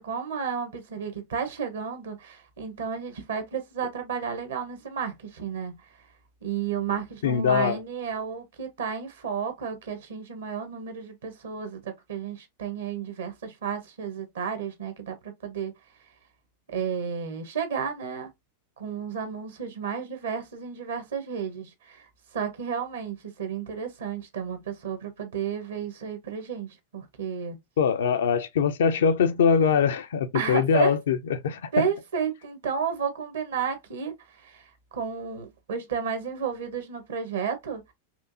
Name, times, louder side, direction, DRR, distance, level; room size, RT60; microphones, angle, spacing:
voice 1, 0.0-5.7 6.4-15.7 16.7-18.3 18.8-22.1 22.3-27.6 30.3-31.0 31.7-37.9, right 7 dB, 65° right, 1.1 m, -32 dB
voice 2, 7.2-7.8 27.8-31.9, left 6 dB, 60° left, 0.5 m, -23 dB
4.3 x 2.6 x 2.6 m
figure-of-eight pair, 90°, 0 cm